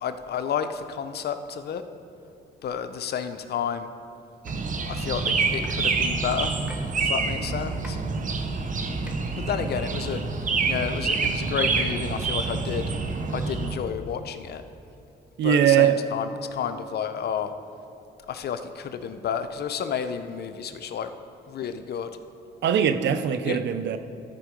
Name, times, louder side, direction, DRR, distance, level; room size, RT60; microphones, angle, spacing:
voice 1, 0.0-1.8 2.6-3.9 4.9-6.5 7.0-8.0 9.4-10.2 10.6-12.8 13.3-14.6 15.4-17.5 18.3-21.1 21.5-22.1 23.4-23.6, left 8 dB, 60° left, 9 dB, 0.7 m, -31 dB
sound 1, 4.4-13.8, right 4 dB, 45° right, 0.9 m, -27 dB
sound 2, 4.5-4.6 5.6-5.9 6.7-6.9 7.8-7.9 9.1-9.2, equal, 5° right, 1.3 m, -42 dB
voice 2, 15.4-16.0 22.6-24.0, right 9 dB, 70° right, 11 dB, 0.6 m, -21 dB
13.0 x 4.6 x 5.1 m, 2.7 s
cardioid pair, 75°, 19 cm